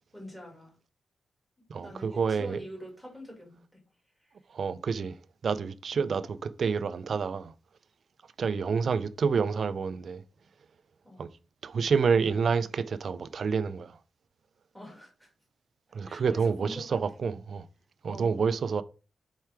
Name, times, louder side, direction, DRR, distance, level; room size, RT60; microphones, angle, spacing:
voice 1, 0.1-0.7 1.7-3.8 4.2-4.3 5.9-6.0 11.0-11.2 14.7-15.3 16.0-16.9 18.0-18.4, equal, 5° left, 2.4 m, -45 dB
voice 2, 1.7-2.6 4.5-5.2 5.4-7.5 8.4-10.2 11.2-11.3 11.6-14.0 15.9-17.7 18.0-18.8, right 5 dB, 55° right, 0.4 m, -28 dB
4.7 x 4.6 x 4.4 m
wide cardioid pair, 140°, 0 cm